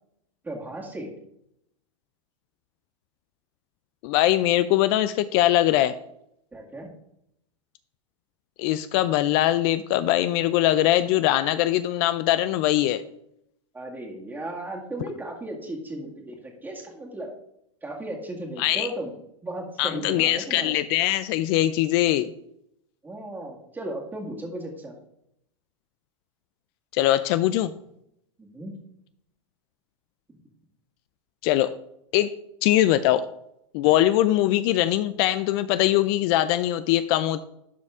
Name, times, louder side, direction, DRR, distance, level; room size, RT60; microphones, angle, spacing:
voice 1, 0.4-1.1 6.5-6.9 13.7-17.3 17.8-19.1 19.4-20.8 23.0-24.9 28.4-28.8, right 1 dB, 10° right, 0 dB, 2.0 m, -35 dB
voice 2, 4.0-5.9 8.6-13.0 18.6-18.9 19.8-22.3 26.9-27.7 31.4-31.7 32.1-32.3 32.6-33.3 33.7-37.4, left 14 dB, 50° left, 13 dB, 0.4 m, -22 dB
12.0 x 4.2 x 3.6 m, 0.77 s
hypercardioid pair, 120°, 16 cm